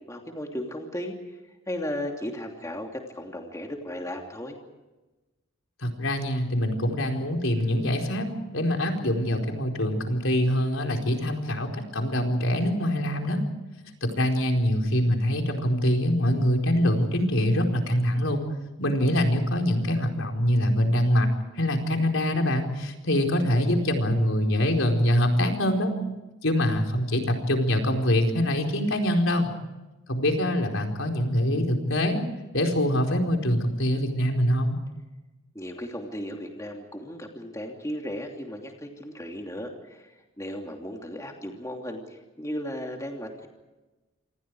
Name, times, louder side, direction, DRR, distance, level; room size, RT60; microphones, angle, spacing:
voice 1, 0.1-1.4 1.7-4.6 35.5-43.5, equal, 15° left, 2 dB, 2.9 m, -35 dB
voice 2, 5.8-13.4 14.0-18.4 18.8-21.3 21.5-25.9 26.4-29.5 30.1-32.2 32.5-34.8, equal, 70° left, 3 dB, 4.5 m, -24 dB
28.0 x 26.5 x 4.9 m, 1.1 s
head